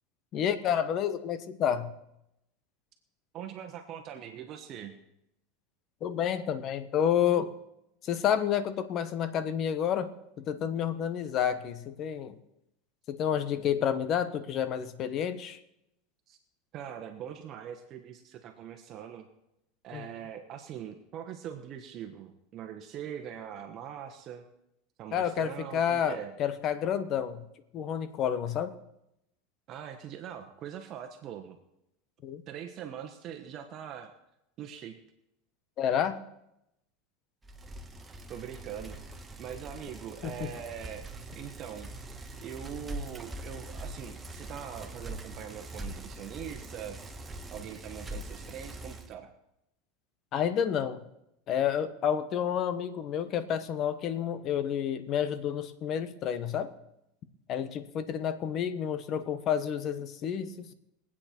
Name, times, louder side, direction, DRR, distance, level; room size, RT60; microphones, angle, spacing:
voice 1, 0.3-1.9 6.0-7.5 8.0-10.1 10.4-12.4 13.1-15.6 19.9-20.1 25.1-27.4 27.7-28.7 32.2-32.4 35.8-36.2 40.2-40.5 50.3-51.0 51.5-56.7 57.5-60.7, left 9 dB, 40° left, 12 dB, 1.2 m, -30 dB
voice 2, 3.3-5.0 16.3-16.4 16.7-19.3 19.8-24.4 25.0-26.3 29.7-31.6 32.5-34.1 34.6-35.0 38.3-39.0 39.4-41.1 41.3-47.0 47.5-49.3, right 9 dB, 40° right, 5 dB, 1.2 m, -42 dB
Bicycle, 37.4-49.1, right 1 dB, 15° right, 1.3 m, -43 dB
22.5 x 8.7 x 4.5 m, 0.83 s
supercardioid pair, 125°, 0 cm